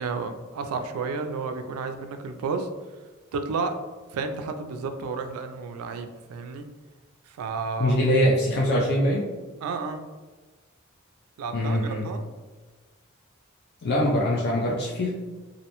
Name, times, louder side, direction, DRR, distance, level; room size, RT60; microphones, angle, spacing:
voice 1, 0.0-2.7 3.3-3.8 4.1-6.7 7.3-8.0 9.6-10.0 11.4-12.2, right 4 dB, 90° right, 11 dB, 0.3 m, -31 dB
voice 2, 7.8-9.2 11.5-12.1 13.8-15.1, equal, 50° left, -3 dB, 0.4 m, -23 dB
2.6 x 2.0 x 2.8 m, 1.3 s
head